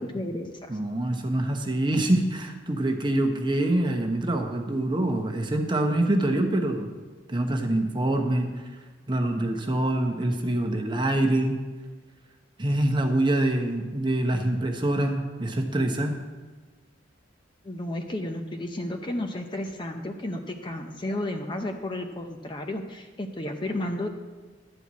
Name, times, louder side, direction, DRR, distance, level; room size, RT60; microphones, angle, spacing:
voice 1, 0.0-0.8 17.6-24.1, left 1 dB, 25° left, 5 dB, 0.6 m, -32 dB
voice 2, 0.7-6.9 7.3-8.5 9.1-11.6 12.6-16.1, right 1 dB, 25° right, 3 dB, 0.9 m, -25 dB
11.5 x 4.6 x 8.2 m, 1.4 s
head